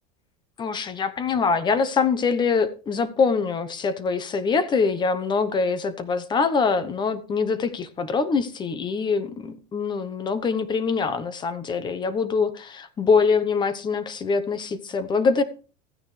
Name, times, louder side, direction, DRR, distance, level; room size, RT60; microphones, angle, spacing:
voice 1, 0.6-15.4, left 5 dB, 20° left, 0.9 m, -24 dB
14.0 x 9.5 x 3.2 m
cardioid pair, 155°, 21 cm